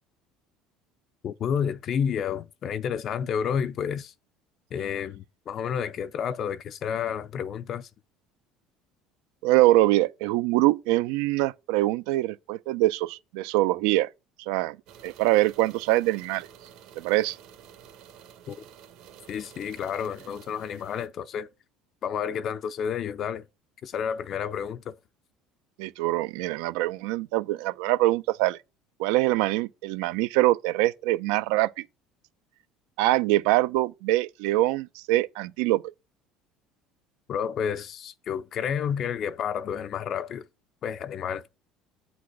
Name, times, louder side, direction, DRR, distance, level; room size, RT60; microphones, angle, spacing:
voice 1, 1.2-4.1 4.7-7.9 18.5-18.6 19.3-21.5 22.0-23.4 23.8-24.9 37.3-40.5 40.8-41.6, left 7 dB, 35° left, 0.4 m, -30 dB
voice 2, 9.4-14.1 14.4-14.8 15.0-16.5 17.0-17.4 25.8-28.6 29.0-31.8 33.0-35.8, right 17 dB, 85° right, 0.5 m, -24 dB
sound 1, 14.9-21.1, right 9 dB, 65° right, 1.2 m, -50 dB
8.5 x 4.0 x 4.7 m
cardioid pair, 160°, 0 cm